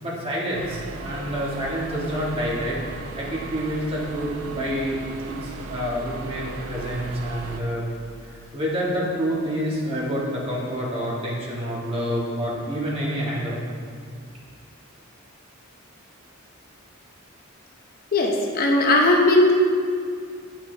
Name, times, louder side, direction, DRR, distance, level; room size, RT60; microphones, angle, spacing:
voice 1, 0.0-2.8 3.2-5.0 5.3-7.9 8.3-13.6, equal, 30° right, -5 dB, 1.7 m, -28 dB
sound 1, 0.5-7.6, right 3 dB, 80° right, 0.6 m, -37 dB
voice 2, 18.1-19.5, left 2 dB, 45° left, 0 dB, 0.8 m, -18 dB
9.6 x 5.9 x 3.4 m, 2.2 s
head